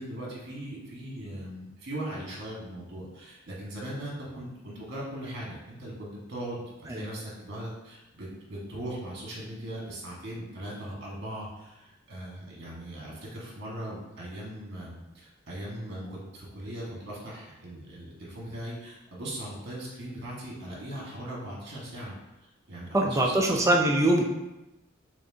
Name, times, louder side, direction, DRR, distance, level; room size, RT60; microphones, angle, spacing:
voice 1, 0.0-22.1 22.4-23.3, right 1 dB, 55° right, -4 dB, 1.5 m, -39 dB
voice 2, 22.9-24.3, right 1 dB, 15° right, 0 dB, 0.5 m, -23 dB
6.4 x 2.5 x 2.7 m, 0.99 s
head